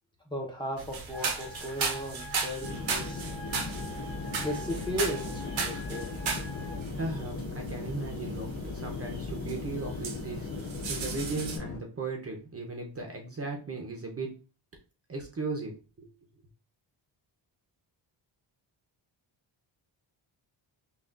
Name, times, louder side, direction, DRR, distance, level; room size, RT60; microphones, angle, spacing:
voice 1, 0.3-3.3 4.3-6.1, equal, 10° left, -2 dB, 0.7 m, -36 dB
sound 1, 0.8-11.6, right 5 dB, 70° right, 0.9 m, -37 dB
sound 2, 1.1-6.8, equal, 70° left, 1.4 m, -46 dB
sound 3, 2.6-11.8, left 4 dB, 35° left, 0.4 m, -38 dB
voice 2, 6.9-14.4 15.1-15.7 16.0-16.1, right 3 dB, 30° right, 1 dB, 0.7 m, -37 dB
5.6 x 2.4 x 2.4 m, 0.34 s
wide cardioid pair, 160°, 48 cm